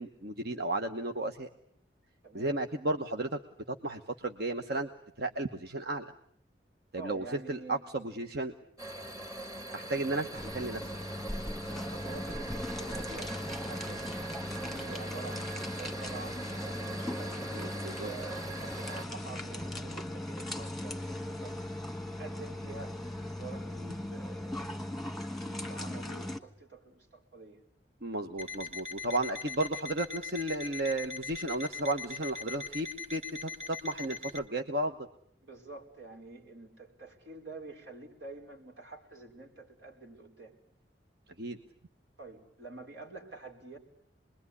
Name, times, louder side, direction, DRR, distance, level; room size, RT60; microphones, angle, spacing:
voice 1, 0.0-1.5 2.3-3.4 3.7-4.9 5.2-6.1 6.9-8.5 9.7-10.8 17.5-18.1 28.0-35.0 41.4-41.6, right 2 dB, 60° right, 6 dB, 1.2 m, -34 dB
voice 2, 2.2-2.5 7.0-7.8 11.7-21.6 22.2-24.7 25.3-27.6 35.4-40.5 42.2-43.8, right 3 dB, 90° right, 1 dB, 5.0 m, -48 dB
sound 1, 8.8-19.0, right 2 dB, 20° right, 2.1 m, -42 dB
sound 2, 10.3-26.4, left 1 dB, ahead, 1.6 m, -39 dB
Alarm, 28.4-34.4, left 5 dB, 35° right, 1.5 m, -41 dB
27.0 x 21.5 x 9.7 m, 0.67 s
head